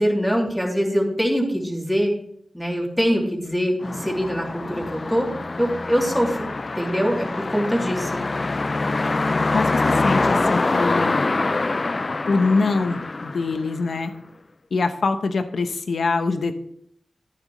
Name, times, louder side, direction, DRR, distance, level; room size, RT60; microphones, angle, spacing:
voice 1, 0.0-2.1 2.5-5.3 5.6-6.5 6.8-8.2, equal, 5° left, -1 dB, 3.0 m, -23 dB
sound 1, 3.8-14.1, left 3 dB, 40° left, 0.4 m, -25 dB
voice 2, 9.5-11.3 12.3-14.1 14.7-16.6, left 3 dB, 75° left, 8 dB, 0.8 m, -23 dB
15.0 x 8.9 x 3.1 m, 0.67 s
wide cardioid pair, 75°, 0 cm